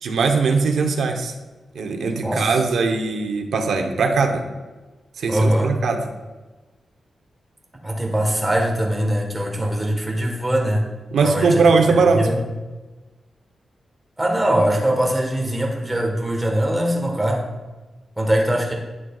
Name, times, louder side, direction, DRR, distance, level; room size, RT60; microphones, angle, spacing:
voice 1, 0.0-1.3 1.7-4.4 5.2-6.0 11.1-12.3, right 4 dB, 85° right, 4 dB, 0.8 m, -20 dB
voice 2, 5.3-5.8 7.8-10.9 11.2-11.5 11.9-12.4 14.2-17.5 18.2-18.7, right 1 dB, 10° right, 0 dB, 1.3 m, -21 dB
10.5 x 6.2 x 2.4 m, 1.2 s
wide cardioid pair, 140°, 0 cm